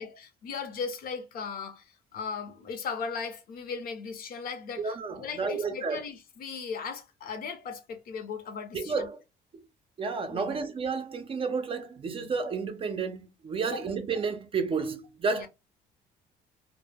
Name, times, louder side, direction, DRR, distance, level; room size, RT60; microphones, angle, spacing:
voice 1, 0.0-9.1 10.3-10.6 13.7-13.8 15.3-15.5, left 5 dB, 60° left, 0.7 m, -37 dB
voice 2, 4.8-6.0 8.7-9.2 10.0-15.5, right 4 dB, 35° right, 0.5 m, -31 dB
2.1 x 2.0 x 3.3 m
cardioid pair, 110°, 17 cm